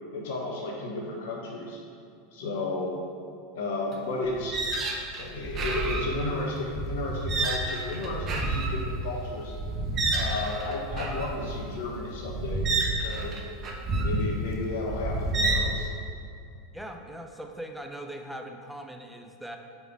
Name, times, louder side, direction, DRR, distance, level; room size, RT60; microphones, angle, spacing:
voice 1, 0.1-1.8 2.3-2.9 3.5-4.6 5.2-9.5 10.1-12.7 12.9-13.3 14.0-15.9, left 2 dB, 65° left, -1 dB, 0.8 m, -33 dB
sound 1, 3.9-4.0 4.3-15.8, right 2 dB, 35° right, 0.8 m, -29 dB
voice 2, 16.7-19.6, right 1 dB, ahead, 3 dB, 0.6 m, -40 dB
4.9 x 4.2 x 4.7 m, 2.5 s
hypercardioid pair, 85°, 0 cm